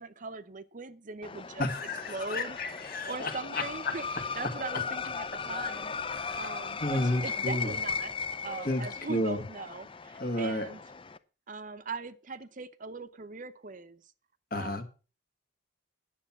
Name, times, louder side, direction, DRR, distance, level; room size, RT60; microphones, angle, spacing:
voice 1, 0.0-1.7 2.1-2.6 3.0-4.0 4.4-5.9 6.4-8.1 8.4-10.8 11.5-14.0 14.5-14.8, right 4 dB, 40° right, 12 dB, 0.7 m, -40 dB
sound 1, 1.2-11.2, left 5 dB, 25° left, 0.5 m, -37 dB
voice 2, 1.6-3.9 6.1-6.5 6.8-7.8 8.6-9.4 10.2-10.7 14.5-14.8, left 1 dB, 50° left, 8 dB, 1.7 m, -32 dB
10.0 x 7.2 x 7.3 m, 0.35 s
head